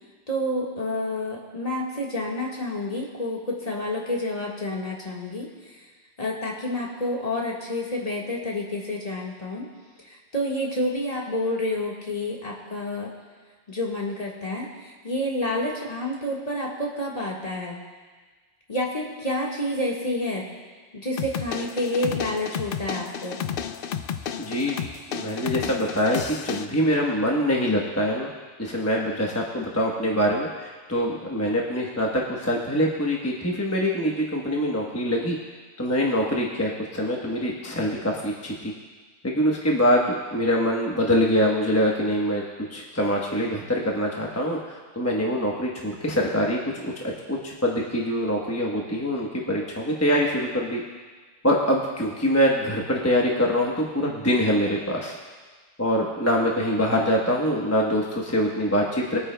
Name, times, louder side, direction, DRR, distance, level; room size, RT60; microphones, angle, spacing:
voice 1, 0.3-5.5 5.8-5.9 6.2-9.7 10.0-13.1 13.7-17.8 18.7-20.5 20.9-23.4, left 1 dB, 35° left, -3 dB, 1.6 m, -29 dB
sound 1, 21.2-26.7, left 8 dB, 60° left, 0.6 m, -32 dB
voice 2, 24.4-24.8 25.1-28.3 28.6-35.4 35.8-38.7 39.2-42.4 42.7-44.6 45.0-46.6 46.8-46.9 47.3-50.8 51.4-55.2 55.8-59.2, equal, 15° left, -2 dB, 1.0 m, -24 dB
21.5 x 9.1 x 2.2 m, 1.4 s
omnidirectional pair, 1.2 m